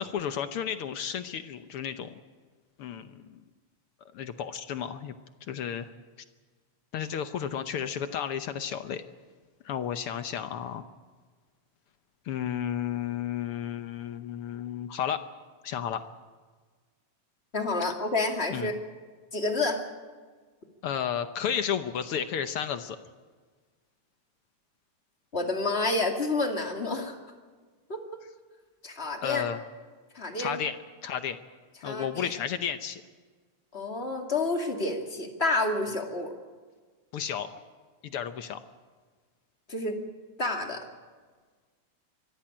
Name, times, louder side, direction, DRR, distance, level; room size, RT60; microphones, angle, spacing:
voice 1, 0.0-2.2 2.8-3.4 4.1-5.1 5.5-5.9 6.9-9.0 9.6-10.8 12.2-15.2 15.6-16.0 18.5-18.7 20.8-23.0 29.2-29.6 30.4-30.8 31.0-31.4 31.8-33.0 37.1-37.5 38.0-38.6, left 8 dB, 70° left, 10 dB, 1.4 m, -32 dB
voice 2, 17.5-18.7 19.3-19.8 25.3-27.2 27.9-28.0 28.8-29.5 30.1-30.6 31.8-32.3 33.7-36.3 39.7-40.0 40.4-40.8, left 2 dB, 25° left, 3 dB, 2.1 m, -29 dB
24.5 x 15.0 x 8.8 m, 1.5 s
omnidirectional pair, 3.4 m